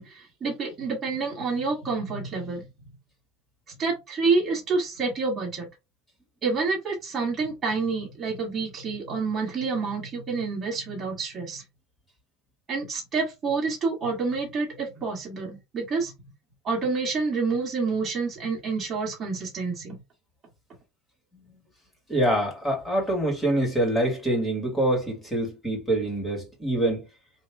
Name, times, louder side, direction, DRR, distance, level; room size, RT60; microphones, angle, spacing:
voice 1, 0.0-2.6 3.8-5.7 6.4-11.6 12.7-16.1 16.6-20.0, right 4 dB, 30° right, 1.7 m, -28 dB
voice 2, 22.1-27.1, right 1 dB, 10° left, 1.9 m, -25 dB
3.3 x 2.7 x 3.4 m
supercardioid pair, 125°, 0 cm